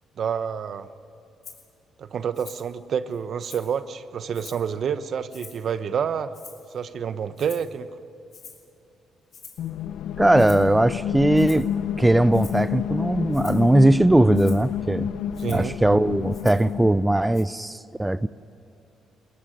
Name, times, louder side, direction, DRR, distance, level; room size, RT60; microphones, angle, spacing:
voice 1, 0.2-0.9 2.0-6.3 6.7-7.9 15.4-15.7, right 7 dB, 60° right, 1.0 m, -28 dB
Rattle (instrument), 1.4-1.7 2.3-2.7 3.1-3.8 4.3-4.7 5.3-5.7 6.3-6.8 7.4-7.7 8.3-8.7 9.3-9.7 10.4-10.7 11.3-11.7 12.3-12.7 13.3-13.7 14.3-14.7 15.3-15.7 16.3-16.7 17.3-17.4, left 6 dB, 60° left, 4.0 m, -46 dB
sound 1, 9.6-17.4, left 9 dB, 75° left, 0.7 m, -29 dB
voice 2, 10.2-11.7 12.0-15.1 15.5-18.3, right 1 dB, 10° right, 0.5 m, -19 dB
21.5 x 18.0 x 10.0 m
supercardioid pair, 65°, 0 cm